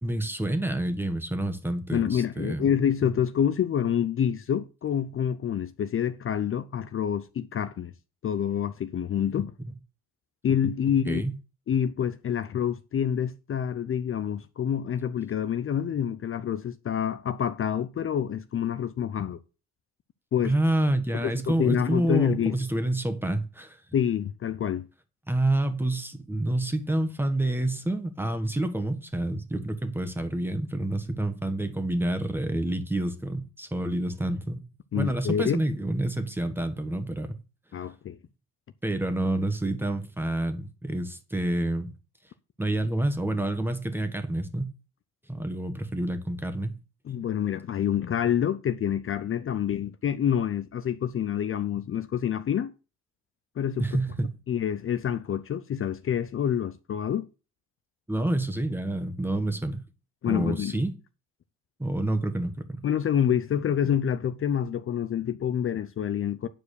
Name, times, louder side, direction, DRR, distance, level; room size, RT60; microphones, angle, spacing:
voice 1, 0.0-2.7 11.1-11.3 20.4-23.8 25.3-34.6 34.9-37.3 38.8-41.9 42.6-44.7 45.3-46.8 53.8-54.3 58.1-59.8 60.3-60.9 61.8-62.8, right 1 dB, 5° right, 1.5 m, -28 dB
voice 2, 1.9-7.9 8.2-9.5 10.4-11.2 11.7-19.4 20.3-20.5 21.1-22.6 23.9-24.9 34.9-35.6 37.7-38.2 47.1-52.7 53.6-53.9 54.5-57.3 60.2-60.8 62.8-66.5, left 9 dB, 45° left, 0.6 m, -27 dB
9.2 x 4.8 x 6.6 m
cardioid pair, 90°, 30 cm